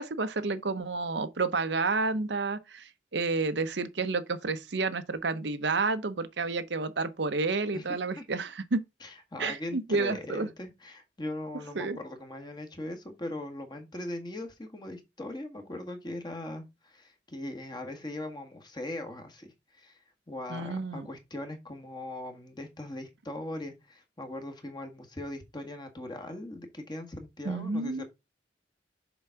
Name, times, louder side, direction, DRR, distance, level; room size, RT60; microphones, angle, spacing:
voice 1, 0.0-8.8 9.4-10.5 11.8-12.0 20.5-21.1 27.4-28.0, right 3 dB, 75° right, 0.8 m, -30 dB
voice 2, 7.7-8.2 9.0-20.0 20.3-28.0, left 1 dB, 25° left, 1.6 m, -40 dB
7.0 x 3.9 x 5.8 m
head